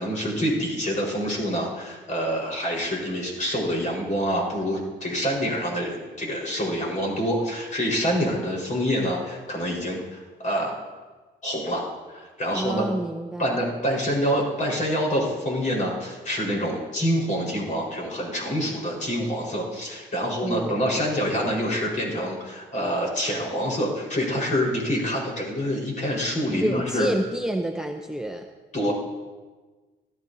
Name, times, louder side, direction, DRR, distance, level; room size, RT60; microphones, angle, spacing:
voice 1, 0.0-10.7 11.4-11.8 12.1-12.8 13.4-27.1 28.7-28.9, equal, 40° left, -3 dB, 4.4 m, -26 dB
voice 2, 12.5-13.6 20.4-20.9 26.5-28.5, right 1 dB, 5° right, 4 dB, 0.7 m, -29 dB
17.0 x 13.0 x 2.7 m, 1.3 s
cardioid pair, 90°, 20 cm